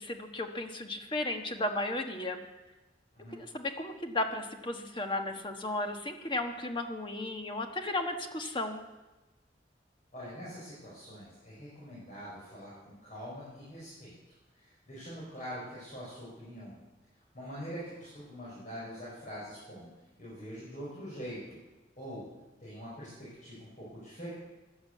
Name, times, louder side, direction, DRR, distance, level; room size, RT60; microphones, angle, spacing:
voice 1, 0.0-2.4 3.3-8.8, left 2 dB, 25° left, 5 dB, 1.3 m, -34 dB
voice 2, 10.1-14.1 14.5-16.8 17.3-19.9 20.2-21.6 22.0-22.2 22.6-24.3, equal, 45° left, -7 dB, 5.3 m, -44 dB
14.0 x 11.0 x 8.2 m, 1.1 s
head